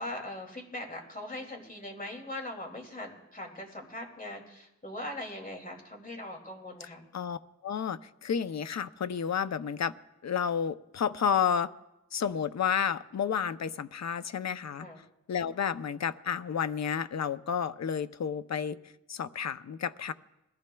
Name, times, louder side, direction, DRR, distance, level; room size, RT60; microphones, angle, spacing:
voice 1, 0.0-7.1 14.8-15.0, left 1 dB, 30° left, 1 dB, 2.5 m, -40 dB
voice 2, 6.8-9.9 10.2-11.7 12.1-14.9 15.3-18.8 19.1-20.1, left 7 dB, 65° left, 12 dB, 0.5 m, -31 dB
22.0 x 15.0 x 2.3 m, 0.92 s
wide cardioid pair, 100°, 29 cm